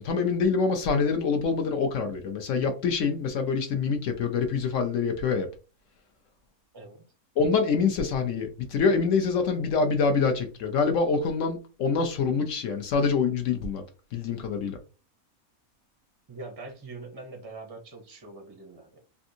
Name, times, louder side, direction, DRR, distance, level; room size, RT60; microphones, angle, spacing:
voice 1, 0.0-5.5 7.4-13.8 14.1-14.8, left 5 dB, 70° left, 0.9 m, -25 dB
voice 2, 6.7-7.1 16.3-19.0, right 3 dB, 30° right, 0.4 m, -43 dB
3.4 x 2.6 x 2.6 m
omnidirectional pair, 1.5 m